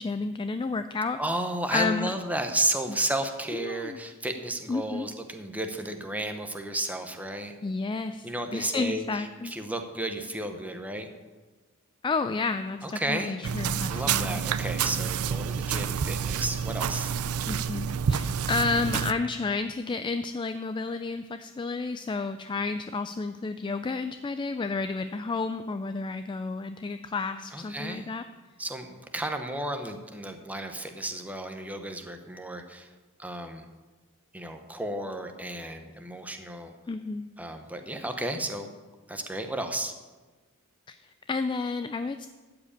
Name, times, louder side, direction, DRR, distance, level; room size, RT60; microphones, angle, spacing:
voice 1, 0.0-1.2 1.7-2.1 2.9-3.0 3.5-4.0 4.7-5.1 7.6-8.3 8.5-9.5 12.0-14.4 17.5-28.2 36.9-37.3 40.9-42.3, left 3 dB, 20° left, 10 dB, 0.3 m, -31 dB
voice 2, 1.2-7.6 8.2-11.1 12.8-13.3 13.9-17.1 27.5-28.1 28.6-32.9 33.2-33.6 34.3-36.7 37.4-38.7 39.1-39.9, right 1 dB, 5° right, 6 dB, 0.9 m, -33 dB
sound 1, 13.4-19.1, right 7 dB, 90° right, 0.5 m, -28 dB
13.0 x 4.9 x 8.7 m, 1.3 s
head